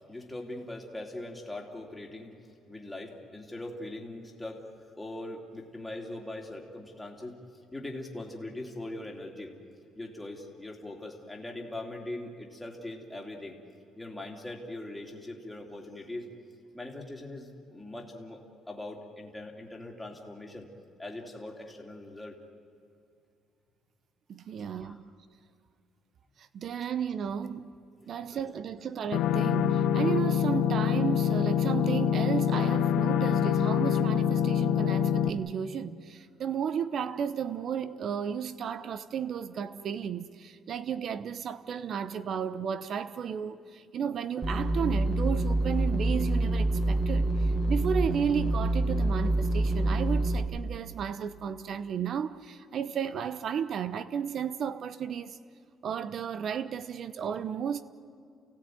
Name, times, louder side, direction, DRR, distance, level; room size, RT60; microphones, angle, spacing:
voice 1, 0.1-2.4 2.7-4.6 5.0-7.4 7.7-9.5 9.9-13.6 14.0-16.3 16.7-18.4 18.7-20.7 21.0-22.4 24.7-25.0 28.0-28.1, left 1 dB, 5° left, 2.8 m, -41 dB
voice 2, 24.3-25.1 26.4-27.7 28.1-55.4 55.8-57.8, right 7 dB, 45° right, 0.9 m, -33 dB
sound 1, 29.1-35.3, left 8 dB, 85° left, 1.3 m, -25 dB
sound 2, 44.4-50.4, right 1 dB, 15° right, 1.9 m, -27 dB
29.0 x 17.0 x 9.3 m
cardioid pair, 145°, 0 cm